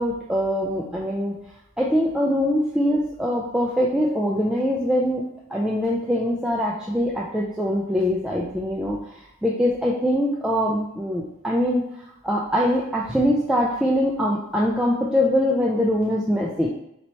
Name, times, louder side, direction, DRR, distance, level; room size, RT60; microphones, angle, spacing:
voice 1, 0.0-1.4 1.8-5.2 5.5-11.8 12.2-16.7, equal, 5° right, -4 dB, 0.3 m, -23 dB
4.3 x 2.7 x 3.0 m, 0.80 s
head